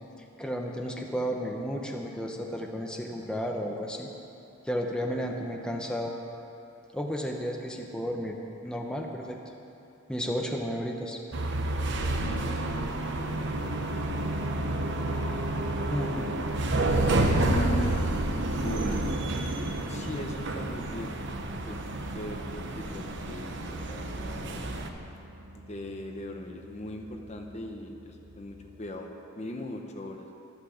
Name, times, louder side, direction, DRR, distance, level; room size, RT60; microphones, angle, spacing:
voice 1, 0.4-4.1 4.6-6.1 6.9-8.4 8.6-9.4 10.1-11.2 15.9-16.3, equal, 5° left, 0 dB, 1.0 m, -32 dB
sound 1, 11.3-24.9, right 2 dB, 60° right, 1.0 m, -30 dB
voice 2, 12.4-14.8 15.8-16.4 17.4-18.0 18.5-19.0 19.9-21.2 21.7-21.8 22.1-24.7 25.5-29.1 29.4-30.3, left 1 dB, 35° left, 3 dB, 1.0 m, -40 dB
sound 2, 13.3-28.9, equal, 80° right, 1.6 m, -41 dB
12.5 x 12.0 x 7.1 m, 2.8 s
head